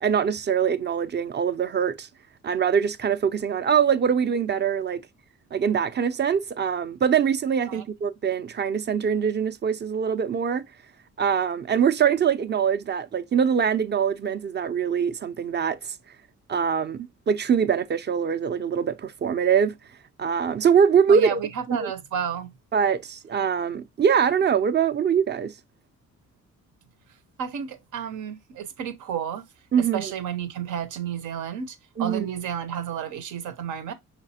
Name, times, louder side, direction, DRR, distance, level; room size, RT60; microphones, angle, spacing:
voice 1, 0.0-2.1 2.4-5.0 5.5-10.6 11.2-15.9 16.5-19.8 20.2-21.4 21.7-21.9 22.7-25.5 29.7-30.1 32.0-32.3, right 7 dB, 35° right, 0.5 m, -23 dB
voice 2, 21.1-22.5 27.4-29.4 29.8-33.9, right 8 dB, 80° right, 0.9 m, -31 dB
5.8 x 3.3 x 2.8 m
cardioid pair, 90°, 30 cm